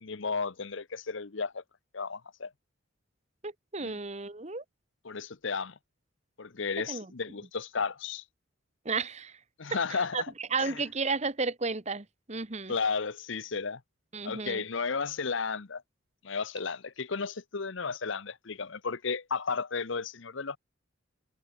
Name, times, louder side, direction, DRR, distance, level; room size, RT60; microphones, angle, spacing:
voice 1, 0.0-1.6 1.9-2.5 3.8-3.9 5.0-5.7 6.4-8.2 9.6-10.3 10.6-10.7 12.7-13.8 14.2-15.8 16.2-20.6, left 5 dB, 65° left, 0.9 m, -33 dB
voice 2, 3.4-4.6 6.9-7.1 8.8-9.4 9.7-12.7 14.1-14.6, right 4 dB, 30° right, 1.3 m, -33 dB
head